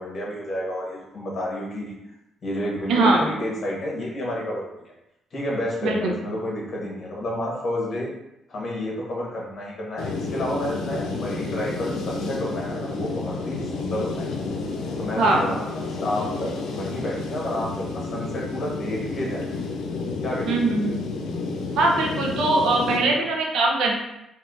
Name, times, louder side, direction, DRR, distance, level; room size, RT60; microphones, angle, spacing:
voice 1, 0.0-1.9 2.4-4.9 5.3-8.1 8.5-14.3 15.0-19.5 20.2-20.7 22.9-23.3, left 1 dB, 50° left, -3 dB, 1.5 m, -30 dB
voice 2, 2.9-3.3 5.8-6.2 15.2-15.6 20.5-21.0 21.7-23.9, right 2 dB, 80° right, 0 dB, 0.8 m, -21 dB
sound 1, 10.0-23.0, left 3 dB, 90° left, 0.6 m, -30 dB
3.6 x 2.8 x 3.9 m, 0.87 s
cardioid pair, 90°, 0 cm